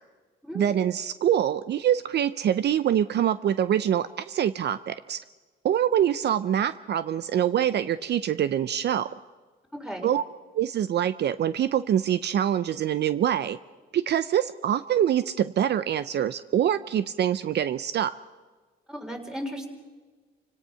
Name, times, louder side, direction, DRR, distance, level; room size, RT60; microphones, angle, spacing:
voice 1, 0.5-5.2 5.6-9.1 10.0-10.2 10.5-13.6 13.9-18.2, right 10 dB, 60° right, 14 dB, 0.6 m, -25 dB
voice 2, 9.7-10.1 18.9-19.7, equal, 5° right, 3 dB, 3.8 m, -35 dB
28.5 x 17.5 x 5.7 m, 1.4 s
cardioid pair, 90°, 20 cm